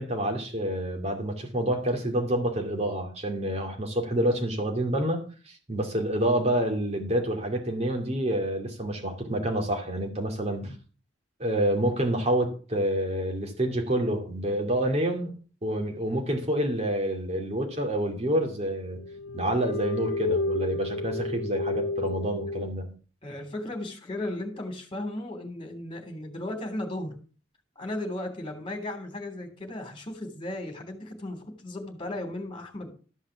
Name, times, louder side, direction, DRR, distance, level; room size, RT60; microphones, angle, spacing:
voice 1, 0.0-10.7 11.4-15.3 15.6-19.0 19.3-23.0, right 1 dB, 35° right, 3 dB, 2.6 m, -28 dB
sound 1, 18.0-18.1 18.7-22.7, left 3 dB, 65° left, 0.5 m, -31 dB
voice 2, 23.2-27.1 27.7-32.9, left 1 dB, 25° left, 4 dB, 3.3 m, -35 dB
13.5 x 5.7 x 7.1 m, 0.38 s
head